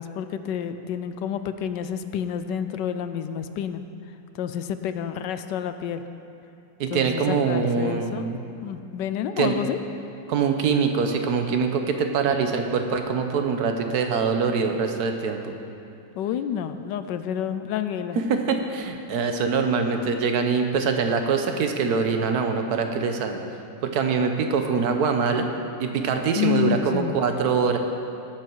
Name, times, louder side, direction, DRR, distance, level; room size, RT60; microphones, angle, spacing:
voice 1, 0.0-3.8 4.3-6.0 6.9-8.3 8.6-9.8 16.2-18.2 26.4-27.2, left 9 dB, 80° left, 10 dB, 1.2 m, -29 dB
voice 2, 6.8-8.4 9.4-9.5 10.3-15.5 18.1-23.4 23.8-25.5 25.8-27.8, right 5 dB, 65° right, 5 dB, 1.3 m, -24 dB
18.0 x 7.9 x 4.6 m, 2.7 s
omnidirectional pair, 1.9 m